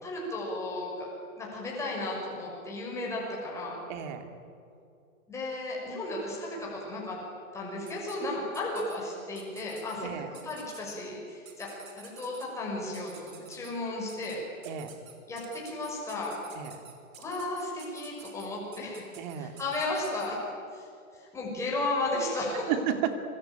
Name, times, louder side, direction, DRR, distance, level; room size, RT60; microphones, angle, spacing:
voice 1, 0.0-1.1 1.4-3.8 5.3-7.2 7.5-10.1 10.4-14.4 15.3-16.3 17.2-19.0 19.4-20.4 20.7-20.9 21.1-22.7, left 2 dB, 5° left, -4 dB, 6.0 m, -34 dB
voice 2, 3.9-4.3 10.0-10.3 14.6-14.9 16.6-16.8 19.2-19.6 22.7-23.1, right 9 dB, 30° right, 7 dB, 2.6 m, -32 dB
sound 1, 7.9-8.2 8.5-9.0 9.4-10.0 10.3-10.9 11.5-12.5 12.9-13.7 14.1-14.4 14.6-20.3, right 8 dB, 70° right, 5.9 m, -50 dB
25.5 x 24.5 x 9.0 m, 2.5 s
hypercardioid pair, 160°, 42 cm